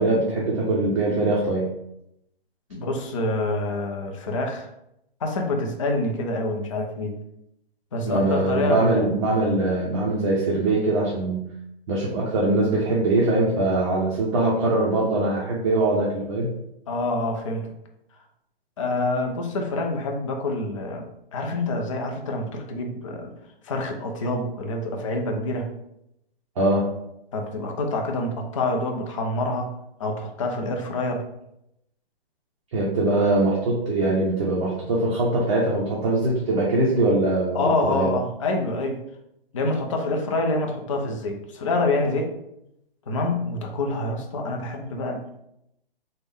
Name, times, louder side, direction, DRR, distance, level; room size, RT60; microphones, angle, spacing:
voice 1, 0.0-1.7 8.0-11.5 11.9-16.5 26.6-26.9 32.7-38.1, right 2 dB, 30° right, -4 dB, 0.6 m, -22 dB
voice 2, 2.7-4.7 5.2-7.1 7.9-9.1 16.9-17.7 18.8-21.1 21.3-23.3 23.6-25.7 27.3-29.7 30.0-31.2 37.5-39.0 39.5-42.3 43.1-45.4, left 2 dB, 35° left, 2 dB, 0.4 m, -26 dB
3.3 x 2.1 x 3.4 m, 0.81 s
hypercardioid pair, 150°, 31 cm